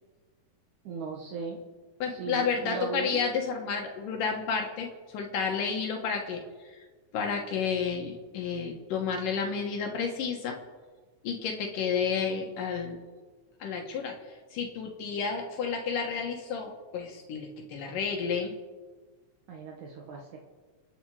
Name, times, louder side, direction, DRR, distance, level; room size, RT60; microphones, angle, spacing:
voice 1, 0.8-1.6 2.1-3.2 19.5-20.4, right 4 dB, 65° right, 0 dB, 2.8 m, -37 dB
voice 2, 2.0-6.8 7.1-10.6 11.2-13.0 13.6-18.5, left 6 dB, 80° left, 1 dB, 3.1 m, -31 dB
29.5 x 9.9 x 4.9 m, 1.4 s
omnidirectional pair, 3.8 m